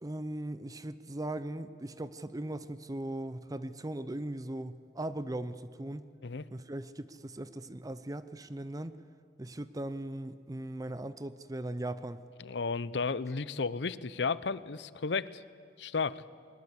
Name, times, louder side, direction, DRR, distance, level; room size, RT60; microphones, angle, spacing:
voice 1, 0.0-6.1 6.5-8.9 9.4-12.2, right 1 dB, 20° right, 13 dB, 0.6 m, -39 dB
voice 2, 12.4-15.4 15.8-16.2, left 4 dB, 85° left, 17 dB, 0.7 m, -33 dB
21.0 x 20.5 x 8.3 m, 2.3 s
head